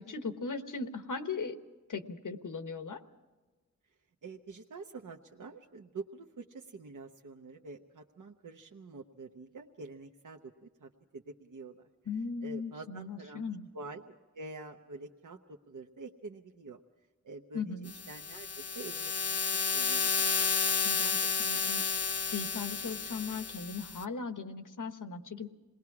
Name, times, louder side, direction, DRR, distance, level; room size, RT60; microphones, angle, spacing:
voice 1, 0.0-1.6 1.9-3.0 12.1-13.7 17.5-17.9 20.8-25.5, left 4 dB, 90° left, 7 dB, 1.2 m, -38 dB
voice 2, 4.2-11.8 12.4-13.5 13.7-16.8 17.2-20.3, right 3 dB, 85° right, 3 dB, 0.9 m, -47 dB
sound 1, 17.9-24.0, left 5 dB, 55° left, 0.7 m, -31 dB
27.5 x 20.0 x 4.8 m, 1.2 s
wide cardioid pair, 85°, 30 cm